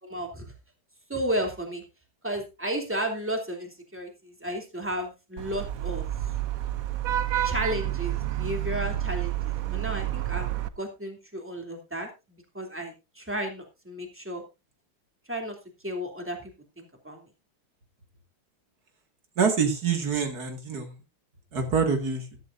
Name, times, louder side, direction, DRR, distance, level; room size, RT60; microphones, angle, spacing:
voice 1, 0.0-0.5 1.1-1.8 2.2-6.0 7.4-10.5 10.7-14.4 15.3-15.5 15.8-17.3, right 1 dB, 5° right, 3 dB, 2.8 m, -33 dB
Vehicle horn car horn honking / Traffic noise roadway noise, 5.4-10.7, right 13 dB, 65° right, 0.9 m, -29 dB
voice 2, 19.4-20.9 21.5-22.2, right 5 dB, 45° right, 5 dB, 2.6 m, -25 dB
13.5 x 13.0 x 2.6 m, 0.26 s
omnidirectional pair, 2.3 m